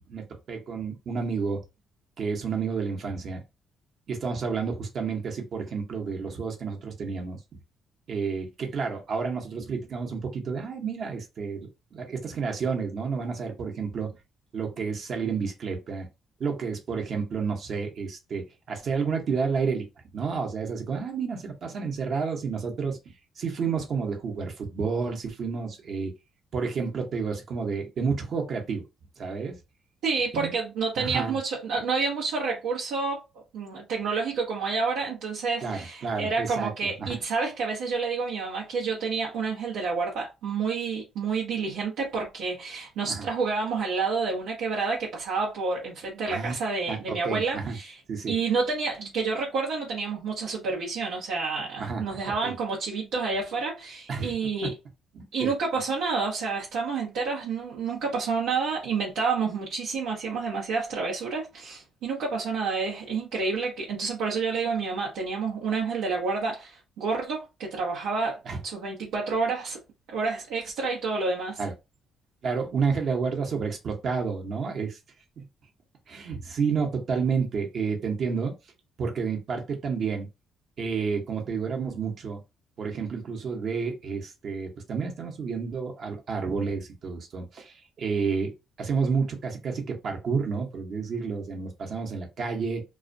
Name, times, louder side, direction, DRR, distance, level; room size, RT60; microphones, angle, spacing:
voice 1, 0.0-1.6 2.2-3.4 4.1-7.4 8.1-11.6 11.9-14.1 14.5-16.1 16.4-19.9 20.1-23.0 23.4-26.1 26.5-28.8 29.2-29.6 30.3-30.5 31.0-31.4 35.6-37.2 43.1-43.3 46.3-46.5 46.9-47.8 48.1-48.3 51.8-52.5 54.1-54.3 54.6-54.7 55.1-55.5 68.5-68.6 71.6-71.7 72.4-75.0 75.4-75.5 76.1-78.5 79.0-80.3 80.8-82.4 82.8-88.5 88.8-92.8, right 5 dB, 55° right, 0.8 m, -30 dB
voice 2, 30.0-33.2 33.5-48.0 48.3-54.8 55.3-69.8 70.1-71.6, right 4 dB, 90° right, 0.7 m, -29 dB
2.3 x 2.2 x 2.5 m
cardioid pair, 100°, 0 cm